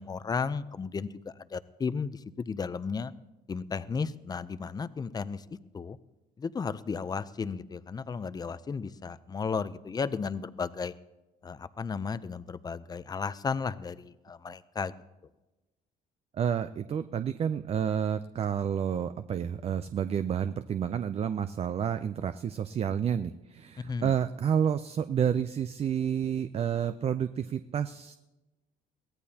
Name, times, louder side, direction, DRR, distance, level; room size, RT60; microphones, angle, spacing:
voice 1, 0.0-3.1 3.5-5.4 5.7-6.0 6.4-10.9 11.4-14.9 23.8-24.1, left 5 dB, 25° left, 15 dB, 0.5 m, -34 dB
voice 2, 16.3-28.2, right 8 dB, 35° right, 11 dB, 0.4 m, -30 dB
22.5 x 16.0 x 2.8 m, 1.1 s
cardioid pair, 110°, 17 cm